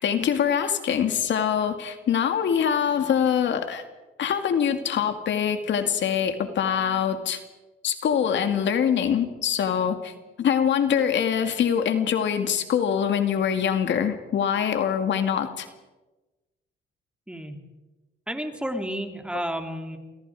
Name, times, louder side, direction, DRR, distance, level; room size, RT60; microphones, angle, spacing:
voice 1, 0.0-3.8 4.2-7.4 7.8-10.1 10.4-15.7, left 8 dB, 70° left, 7 dB, 2.2 m, -24 dB
voice 2, 18.3-20.0, equal, 5° right, 4 dB, 3.2 m, -31 dB
28.0 x 24.5 x 4.9 m, 1.1 s
cardioid pair, 90°, 20 cm